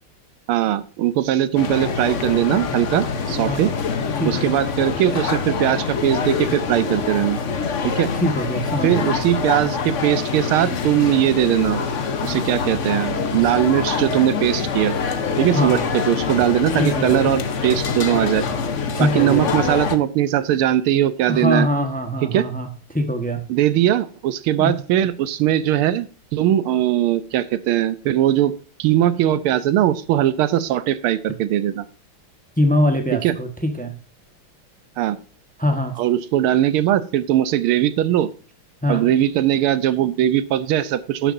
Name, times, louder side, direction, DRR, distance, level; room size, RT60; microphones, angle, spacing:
voice 1, 0.5-3.7 4.2-7.4 7.8-8.1 8.8-11.8 12.2-15.0 15.4-18.5 19.0-21.7 22.3-22.5 23.5-26.1 26.3-31.9 33.2-33.3 35.0-35.2 36.0-38.3 38.9-41.3, right 12 dB, 90° right, 14 dB, 1.6 m, -20 dB
sound 1, 1.6-20.0, left 5 dB, 50° left, 1.0 m, -25 dB
voice 2, 4.2-4.5 8.1-9.2 15.5-15.9 16.8-17.3 18.9-19.5 21.3-23.4 24.6-24.7 32.6-33.9 35.6-36.0 38.8-39.1, equal, 5° left, 5 dB, 0.9 m, -23 dB
11.5 x 10.0 x 2.7 m, 0.39 s
omnidirectional pair, 2.3 m